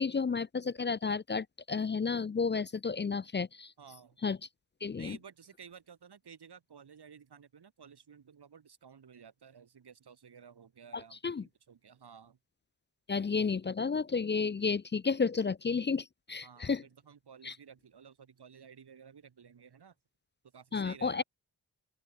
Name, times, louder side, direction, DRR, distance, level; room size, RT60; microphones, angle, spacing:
voice 1, 0.0-3.7 4.2-4.4 4.8-5.2 10.9-11.4 13.1-16.8 17.4-17.5 20.7-21.2, left 5 dB, 30° left, 0.4 m, -32 dB
voice 2, 3.8-4.2 5.0-12.4 16.4-19.9 20.5-21.2, right 7 dB, 90° right, 5.1 m, -54 dB
open air
cardioid pair, 60°, 38 cm